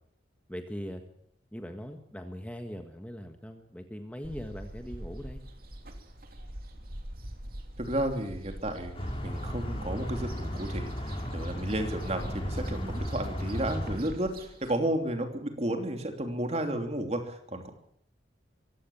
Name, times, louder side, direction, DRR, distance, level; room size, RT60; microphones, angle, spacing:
voice 1, 0.5-1.0 1.5-5.4, equal, 5° left, 5 dB, 1.6 m, -40 dB
sound 1, 4.2-14.8, right 1 dB, 50° right, 2.9 m, -44 dB
voice 2, 7.8-17.7, right 1 dB, 35° right, 5 dB, 3.1 m, -32 dB
sound 2, 8.9-14.0, equal, 30° left, 3.7 m, -35 dB
23.5 x 16.5 x 7.3 m, 0.67 s
head